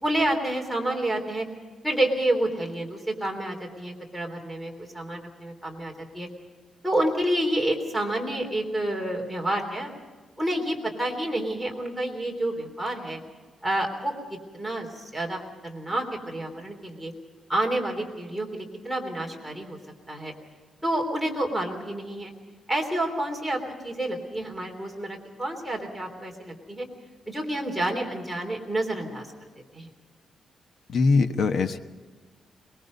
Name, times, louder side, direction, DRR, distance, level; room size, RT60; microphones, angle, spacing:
voice 1, 0.0-1.5 1.8-6.3 6.8-9.9 10.4-13.2 13.6-14.1 14.5-17.1 17.5-19.8 20.1-20.3 20.8-22.3 22.7-26.9 27.3-29.3 29.7-29.9, right 1 dB, ahead, 0 dB, 3.4 m, -29 dB
voice 2, 30.9-31.8, left 4 dB, 55° left, 8 dB, 1.2 m, -22 dB
22.5 x 22.0 x 5.3 m, 1.4 s
wide cardioid pair, 150°, 0 cm